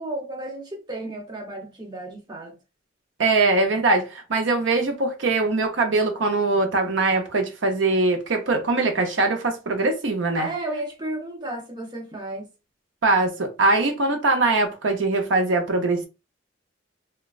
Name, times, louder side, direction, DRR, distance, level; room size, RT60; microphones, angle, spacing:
voice 1, 0.0-2.6 10.4-12.5, right 1 dB, 20° right, 0.6 m, -33 dB
voice 2, 3.2-10.5 13.0-16.1, right 3 dB, 75° right, 0.6 m, -22 dB
3.0 x 2.2 x 2.3 m
head